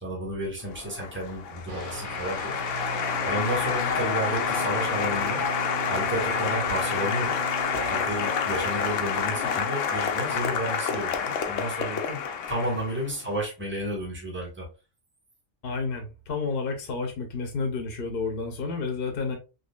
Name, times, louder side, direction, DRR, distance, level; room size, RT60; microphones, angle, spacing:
voice 1, 0.0-2.5 3.2-5.4 5.9-7.4 7.7-14.7, right 1 dB, 10° right, -3 dB, 1.3 m, -32 dB
Applause, 0.7-13.1, left 7 dB, 90° left, 1.0 m, -28 dB
sound 1, 1.7-11.3, right 6 dB, 50° right, 0.7 m, -39 dB
voice 2, 15.6-19.4, left 4 dB, 55° left, 4 dB, 0.8 m, -30 dB
4.0 x 3.1 x 2.2 m, 0.30 s
omnidirectional pair, 1.2 m